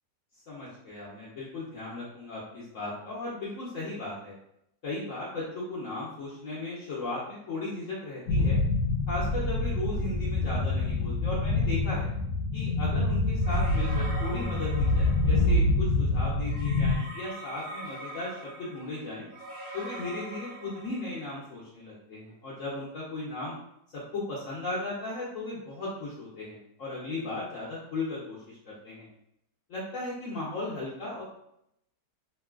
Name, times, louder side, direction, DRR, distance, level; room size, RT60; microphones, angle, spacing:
voice 1, 0.5-4.4 4.8-8.6 9.1-12.1 12.5-19.3 19.7-23.6 23.9-29.1 29.7-31.2, left 2 dB, 65° left, -6 dB, 0.9 m, -36 dB
sound 1, 8.3-17.0, left 2 dB, 85° left, 1.2 m, -26 dB
sound 2, 13.4-15.6 16.5-21.4, right 1 dB, 70° right, 1.1 m, -43 dB
3.0 x 2.6 x 2.3 m, 0.79 s
omnidirectional pair, 1.7 m